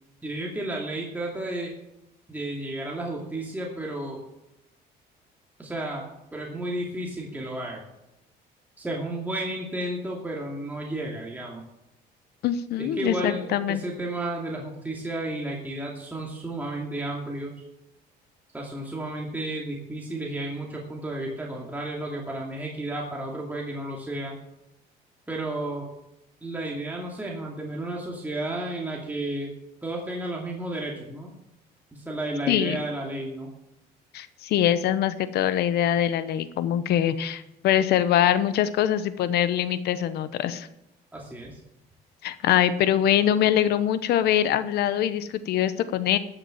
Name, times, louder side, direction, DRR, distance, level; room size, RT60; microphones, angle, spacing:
voice 1, 0.2-1.7 2.3-4.2 5.6-6.1 6.3-7.8 8.8-11.6 12.8-17.6 18.5-24.4 25.3-25.9 26.4-29.5 29.8-31.3 31.9-33.5 41.1-41.6, right 1 dB, 10° right, -2 dB, 2.4 m, -32 dB
voice 2, 12.4-13.8 32.5-32.8 34.1-40.7 42.2-46.2, left 11 dB, 75° left, 13 dB, 1.0 m, -23 dB
13.0 x 7.0 x 7.2 m, 0.86 s
cardioid pair, 110°, 17 cm